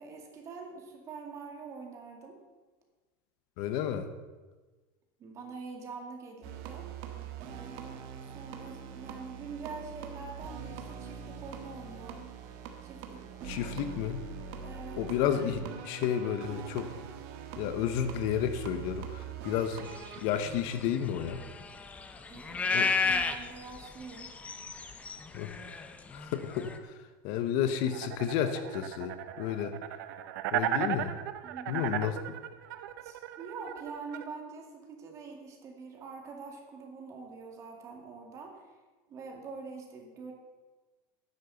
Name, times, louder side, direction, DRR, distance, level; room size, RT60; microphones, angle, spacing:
voice 1, 0.0-2.4 5.2-6.9 7.4-12.3 12.8-13.7 14.6-15.0 22.3-24.3 31.4-32.0 33.0-38.8 39.1-40.3, right 4 dB, 30° right, 2 dB, 2.2 m, -45 dB
voice 2, 3.6-4.1 13.4-14.2 15.0-16.9 17.6-19.8 20.2-21.4 22.7-22.9 25.3-25.5 26.1-26.7 27.2-29.7 30.5-31.1 31.7-32.2, left 9 dB, 55° left, 9 dB, 0.9 m, -31 dB
sound 1, 6.4-20.2, right 7 dB, 55° right, 1.5 m, -43 dB
sound 2, 19.9-26.8, left 4 dB, 15° left, 0.6 m, -33 dB
sound 3, 27.9-34.2, right 11 dB, 75° right, 0.7 m, -35 dB
10.5 x 6.7 x 7.8 m, 1.3 s
supercardioid pair, 165°, 10 cm